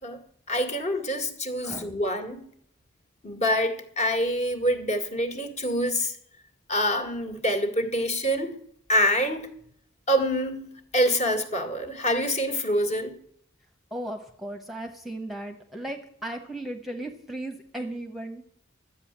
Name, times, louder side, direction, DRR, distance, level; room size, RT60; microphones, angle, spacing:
voice 1, 0.5-2.5 3.2-6.1 6.7-8.6 8.9-9.5 10.1-13.1, equal, 35° left, 5 dB, 2.1 m, -26 dB
voice 2, 13.9-18.4, right 1 dB, ahead, 5 dB, 1.1 m, -36 dB
12.5 x 8.7 x 7.4 m, 0.66 s
head